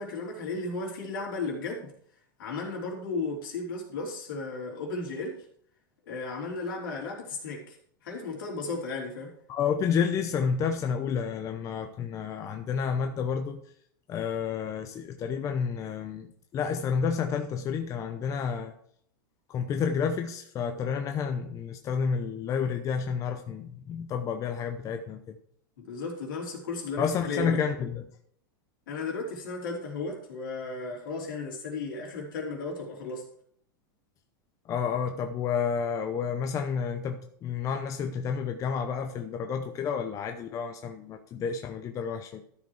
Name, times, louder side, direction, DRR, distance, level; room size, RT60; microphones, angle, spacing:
voice 1, 0.0-1.9 2.4-5.4 6.1-7.8 8.0-9.4 25.8-27.6 28.9-33.2, left 3 dB, 75° left, -1 dB, 3.5 m, -35 dB
voice 2, 9.5-13.6 14.1-16.3 16.5-18.7 19.5-25.4 27.0-28.0 34.7-42.4, left 6 dB, 30° left, 5 dB, 0.8 m, -30 dB
13.0 x 5.1 x 4.8 m, 0.63 s
supercardioid pair, 130°, 11 cm